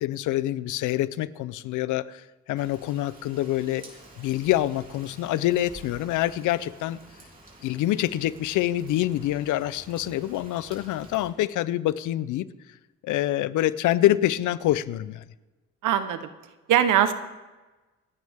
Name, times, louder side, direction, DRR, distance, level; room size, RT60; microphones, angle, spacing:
voice 1, 0.0-2.2 2.5-3.9 4.2-7.0 7.6-12.5 13.0-15.2, left 14 dB, 85° left, 0.6 m, -26 dB
Rain, 2.5-11.3, right 2 dB, 30° right, 3.5 m, -50 dB
voice 2, 15.8-16.3 16.7-17.1, right 10 dB, 90° right, 1.0 m, -21 dB
27.5 x 9.5 x 3.6 m
cardioid pair, 90°, 30 cm